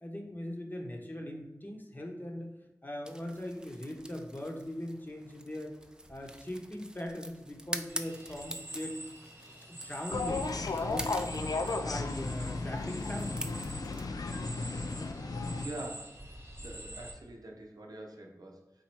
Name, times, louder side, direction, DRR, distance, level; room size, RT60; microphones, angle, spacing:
voice 1, 0.0-2.5 2.8-5.8 6.1-9.0 9.4-10.4 10.8-13.4, left 1 dB, 30° left, 1 dB, 0.9 m, -40 dB
sound 1, 3.0-14.0, right 1 dB, 10° right, 0.4 m, -45 dB
sound 2, 7.9-17.1, right 1 dB, 35° right, 0.9 m, -47 dB
sound 3, 10.1-15.7, left 3 dB, 70° left, 0.4 m, -34 dB
voice 2, 15.6-18.7, right 1 dB, 75° right, 1 dB, 0.7 m, -45 dB
4.2 x 2.6 x 4.3 m, 0.99 s
wide cardioid pair, 40°, 7 cm